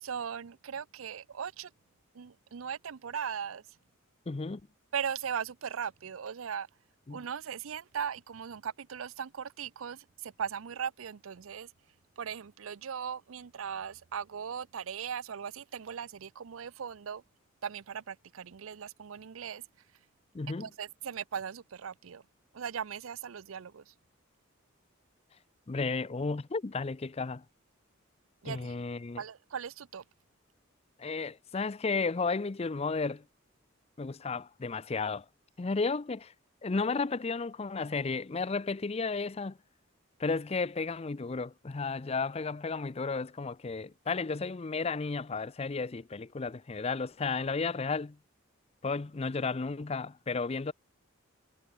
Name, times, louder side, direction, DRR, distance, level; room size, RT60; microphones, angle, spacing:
voice 1, 0.0-1.7 2.1-3.6 4.9-6.7 7.1-11.7 12.2-17.2 17.6-19.6 20.6-22.2 22.5-23.9 28.4-28.8 29.2-30.0, right 7 dB, 85° right, 0.5 m, -38 dB
voice 2, 4.3-4.6 7.1-7.2 20.3-20.7 25.7-27.4 28.4-29.2 31.0-33.2 34.0-35.2 35.6-36.3 36.6-39.6 40.2-48.2 48.8-50.7, left 4 dB, 30° left, 0.5 m, -33 dB
head